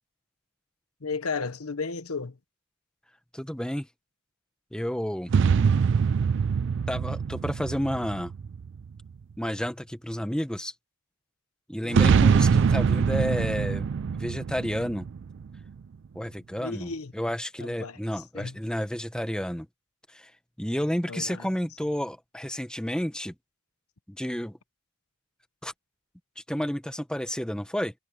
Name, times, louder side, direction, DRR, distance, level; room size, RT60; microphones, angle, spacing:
voice 1, 1.0-2.4 11.8-12.1 16.6-17.1 17.6-18.0 18.3-18.6 21.1-21.5, left 4 dB, 90° left, 1.2 m, -34 dB
voice 2, 3.3-3.9 4.7-5.3 6.9-8.3 9.4-10.7 11.7-15.1 16.1-19.7 20.1-20.3 20.6-23.3 24.1-24.6 25.6-25.7 26.4-27.9, equal, 5° left, 1.0 m, -31 dB
sound 1, 5.3-9.0 11.9-15.7, right 6 dB, 55° right, 0.4 m, -23 dB
head